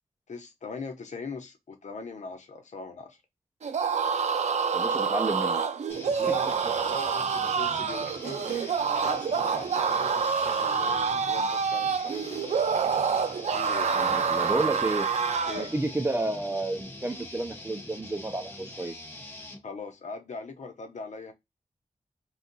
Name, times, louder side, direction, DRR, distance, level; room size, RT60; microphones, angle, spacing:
voice 1, 0.3-3.2 6.0-6.6 6.8-12.6 13.5-14.1 15.5-15.7 19.6-21.3, left 3 dB, 80° left, 0.8 m, -41 dB
sound 1, 3.6-15.7, right 6 dB, 75° right, 0.4 m, -27 dB
voice 2, 4.7-5.6 13.9-15.1 15.6-18.9, right 2 dB, 20° right, 0.5 m, -31 dB
sound 2, 5.9-19.6, left 1 dB, 15° left, 0.9 m, -44 dB
2.6 x 2.3 x 3.8 m
wide cardioid pair, 80°, 12 cm